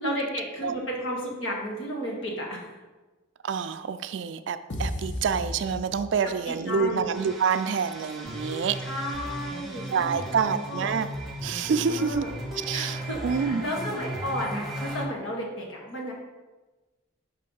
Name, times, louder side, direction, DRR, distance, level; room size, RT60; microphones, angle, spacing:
voice 1, 0.0-2.6 6.4-7.1 8.8-10.9 11.9-12.3 12.7-16.1, equal, 85° left, -1 dB, 1.4 m, -33 dB
voice 2, 3.4-8.8 9.9-11.1 11.4-12.2 12.6-13.6, right 6 dB, 65° right, 11 dB, 0.3 m, -27 dB
sound 1, 4.7-6.5, left 1 dB, 65° left, 0.8 m, -34 dB
sound 2, 7.1-15.0, right 1 dB, ahead, 0.8 m, -36 dB
5.5 x 3.3 x 5.4 m, 1.2 s
head